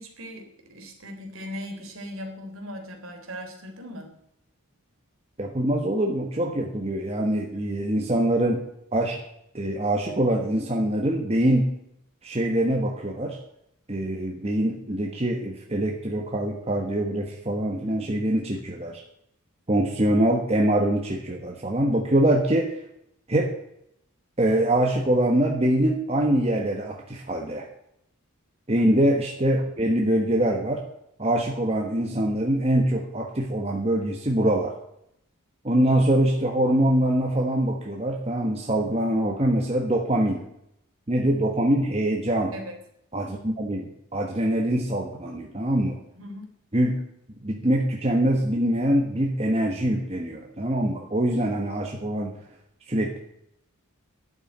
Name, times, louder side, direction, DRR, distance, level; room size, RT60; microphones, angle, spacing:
voice 1, 0.0-4.1 28.8-29.0 42.5-42.8 46.2-46.5, equal, 70° right, 3 dB, 3.4 m, -38 dB
voice 2, 5.4-8.6 8.9-9.2 9.5-11.7 12.2-13.4 13.9-19.0 19.7-22.8 23.3-23.5 24.4-27.7 28.7-30.8 31.2-34.7 35.6-40.4 41.1-42.5 43.1-46.0 46.7-47.0 47.4-52.4 52.9-53.2, right 1 dB, 30° right, 0 dB, 1.4 m, -24 dB
11.5 x 6.8 x 9.2 m, 0.75 s
head